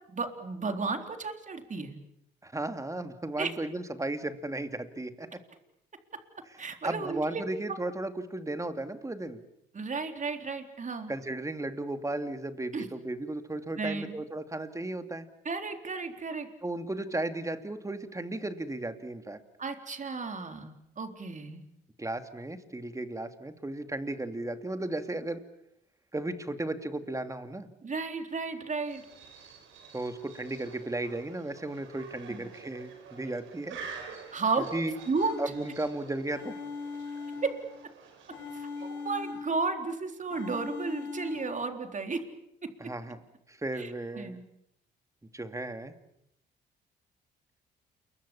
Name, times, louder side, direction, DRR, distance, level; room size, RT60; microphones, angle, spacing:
voice 1, 0.1-2.0 3.4-3.6 6.6-7.4 9.7-11.1 12.7-12.9 13.8-14.2 15.4-16.5 19.6-21.6 27.8-29.0 32.3-32.4 34.3-34.7 35.1-35.4 38.5-42.2 42.6-42.7 43.8-44.4, right 4 dB, 40° right, 6 dB, 3.9 m, -33 dB
voice 2, 2.4-5.3 6.8-9.4 11.1-15.3 16.6-19.4 22.0-25.4 26.1-27.7 29.9-33.8 34.7-35.0 35.4-36.5 42.8-43.2 43.5-44.4 45.3-45.9, right 2 dB, 15° right, 8 dB, 2.7 m, -35 dB
sound 1, 28.8-39.2, right 5 dB, 80° right, 5.2 m, -49 dB
sound 2, 35.1-35.9 36.3-37.9 38.3-39.9 40.3-41.7, left 4 dB, 80° left, 6.6 m, -40 dB
28.5 x 23.0 x 7.3 m, 0.78 s
supercardioid pair, 65°, 20 cm